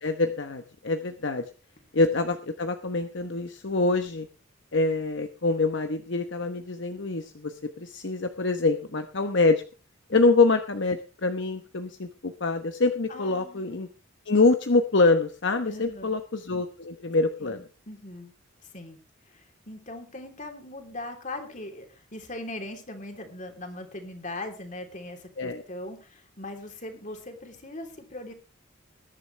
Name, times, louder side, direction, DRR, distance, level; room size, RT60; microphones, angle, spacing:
voice 1, 0.0-1.4 1.9-4.3 4.7-9.6 10.1-13.9 14.3-17.6 25.4-25.6, left 3 dB, 60° left, 7 dB, 1.0 m, -25 dB
voice 2, 13.1-13.7 15.6-16.1 17.4-18.3 18.7-19.0 19.3-28.3, left 1 dB, 40° left, 4 dB, 3.1 m, -40 dB
20.5 x 11.0 x 3.3 m, 0.32 s
head